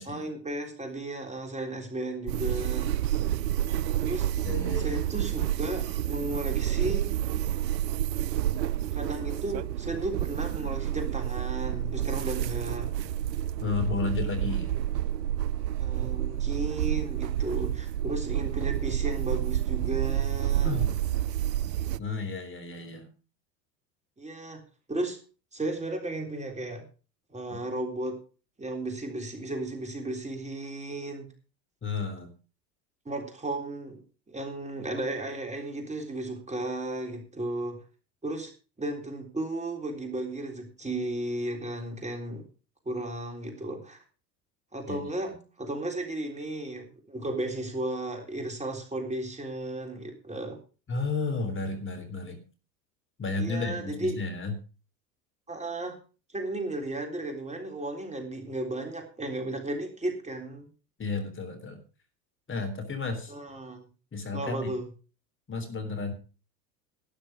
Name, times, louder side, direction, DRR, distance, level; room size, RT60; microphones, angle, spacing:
voice 1, 0.1-2.9 4.0-4.3 4.8-7.1 8.9-12.9 15.8-20.7 24.2-24.6 24.9-25.2 25.5-26.8 27.3-28.2 28.6-31.3 33.1-34.0 34.3-37.8 38.2-38.5 38.8-42.5 42.9-44.0 44.7-50.6 53.4-54.2 55.5-56.0 56.3-60.7 63.3-63.9 64.3-64.9, right 2 dB, 15° right, 3 dB, 3.7 m, -34 dB
sound 1, 2.3-22.0, right 11 dB, 85° right, 0.6 m, -29 dB
voice 2, 4.4-5.0 13.6-14.7 20.6-20.9 22.0-23.1 27.5-27.6 31.8-32.3 44.9-45.4 50.9-52.4 53.2-54.5 61.0-61.8 62.5-63.3 64.1-64.7 65.5-66.1, left 3 dB, 25° left, 6 dB, 3.6 m, -32 dB
12.5 x 10.5 x 5.0 m, 0.35 s
hypercardioid pair, 85°, 49 cm